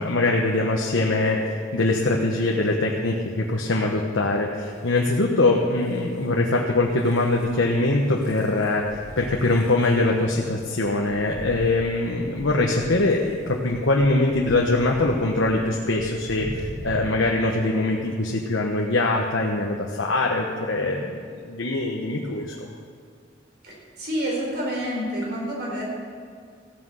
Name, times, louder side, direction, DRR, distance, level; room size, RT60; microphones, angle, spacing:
voice 1, 0.0-21.2 21.4-22.7, left 2 dB, 90° left, -1 dB, 1.1 m, -23 dB
sound 1, 4.5-17.0, equal, 40° left, 3.2 m, -42 dB
voice 2, 23.6-25.8, equal, 55° right, -3 dB, 4.3 m, -28 dB
15.5 x 9.5 x 6.5 m, 2.1 s
head